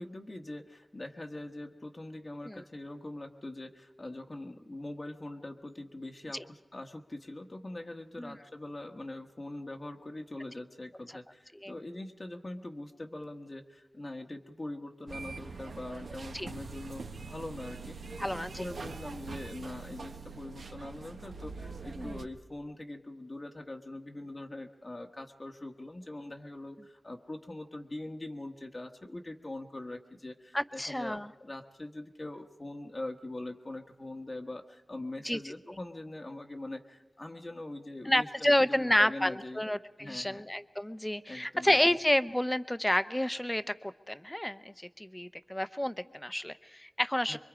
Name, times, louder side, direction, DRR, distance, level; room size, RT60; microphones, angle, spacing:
voice 1, 0.0-39.6 40.0-40.4 41.3-41.8 47.3-47.4, left 1 dB, 35° left, 3 dB, 1.1 m, -42 dB
sound 1, 15.1-22.2, right 4 dB, 85° right, 1.0 m, -43 dB
voice 2, 18.2-18.6 22.0-22.1 30.5-31.3 35.2-35.4 38.1-47.4, left 1 dB, 10° left, 13 dB, 0.7 m, -30 dB
25.5 x 23.0 x 5.0 m, 1.2 s
wide cardioid pair, 80°, 0 cm